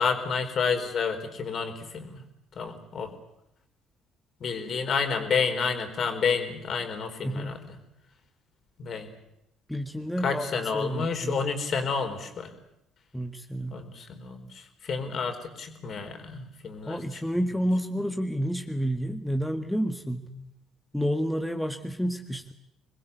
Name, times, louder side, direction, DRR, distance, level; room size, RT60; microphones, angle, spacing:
voice 1, 0.0-2.2 2.6-3.1 4.4-7.6 8.8-9.1 10.2-12.5 13.7-17.2, left 5 dB, 50° left, 6 dB, 4.4 m, -30 dB
voice 2, 7.2-7.6 9.7-11.5 13.1-13.8 16.9-20.3 20.9-22.5, equal, 5° left, 5 dB, 1.8 m, -30 dB
26.5 x 21.0 x 8.2 m, 0.83 s
hypercardioid pair, 50°, 0 cm